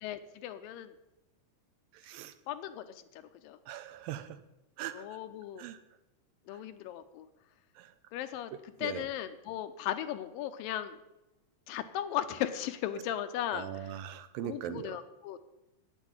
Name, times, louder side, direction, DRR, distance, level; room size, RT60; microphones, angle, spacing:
voice 1, 0.0-0.9 2.5-3.6 4.9-5.7 6.5-7.3 8.1-8.5 8.8-11.0 11.7-14.0 14.4-15.4, left 11 dB, 80° left, 10 dB, 2.5 m, -37 dB
voice 2, 1.9-2.3 3.7-4.4 4.8-5.2 5.6-5.8 7.8-7.9 8.8-9.1 13.5-15.0, right 11 dB, 85° right, 11 dB, 2.5 m, -40 dB
9.1 x 8.2 x 8.9 m, 0.96 s
omnidirectional pair, 4.1 m